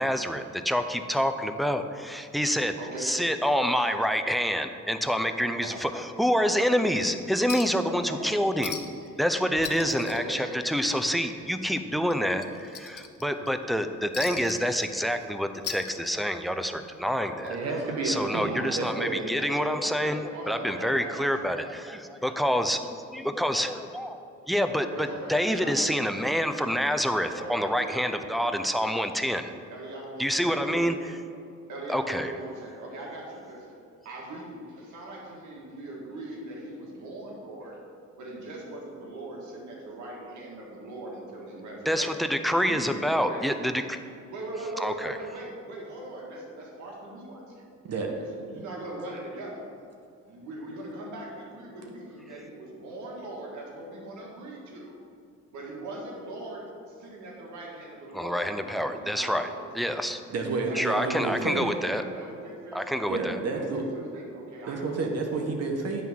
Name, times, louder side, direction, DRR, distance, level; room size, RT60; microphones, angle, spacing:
voice 1, 0.0-8.8 9.2-17.6 18.0-22.8 23.1-24.2 24.5-29.5 30.2-31.0 31.9-32.3 41.9-44.0 44.8-45.2 58.1-59.5 59.7-60.2 60.7-62.0 62.7-63.4, equal, ahead, 8 dB, 0.4 m, -27 dB
voice 2, 2.8-3.2 5.6-5.8 8.1-8.2 9.0-9.1 9.8-10.6 10.8-11.0 17.4-19.0 20.0-21.5 24.9-25.9 27.3-28.3 29.7-30.9 31.7-33.7 34.1-37.8 38.2-42.1 42.7-43.5 44.3-47.6 48.2-49.7 50.3-55.0 55.5-60.0 60.6-63.1 63.5-65.4, right 2 dB, 75° right, -2 dB, 1.7 m, -40 dB
Chink clink, 7.5-7.9 8.2-8.3 8.6-9.1 9.4-11.1 11.4-11.6 12.1-13.5 14.1-15.2 15.5-16.5 17.6-17.7, left 8 dB, 50° left, 0.7 m, -39 dB
voice 3, 17.5-19.2 20.6-20.9 47.8-48.1 60.3-61.7 63.1-63.8 64.7-66.0, right 3 dB, 55° right, 2 dB, 1.1 m, -30 dB
9.2 x 3.5 x 6.2 m, 2.3 s
cardioid pair, 90°, 30 cm